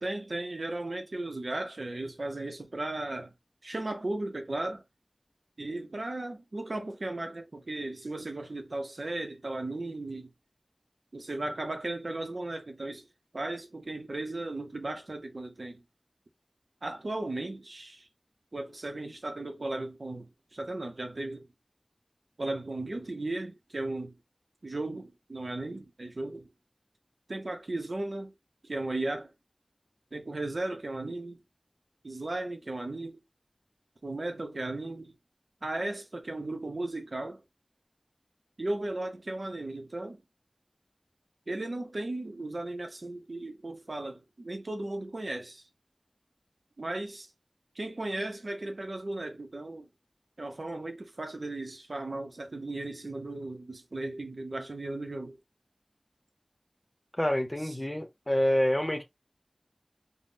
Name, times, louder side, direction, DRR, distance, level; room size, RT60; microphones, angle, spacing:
voice 1, 0.0-3.3 3.6-4.8 5.6-10.3 11.1-13.0 13.3-15.8 16.8-18.0 18.5-21.5 22.4-24.2 24.6-26.5 27.3-28.3 28.6-29.3 30.1-31.4 32.0-33.2 34.0-35.2 35.6-37.4 38.6-40.2 41.5-45.6 46.8-47.3 47.8-49.9 50.4-55.4, right 2 dB, 85° right, 0.6 m, -36 dB
voice 2, 57.2-59.0, left 1 dB, 25° left, 0.7 m, -27 dB
3.5 x 2.0 x 2.6 m
wide cardioid pair, 40°, 0 cm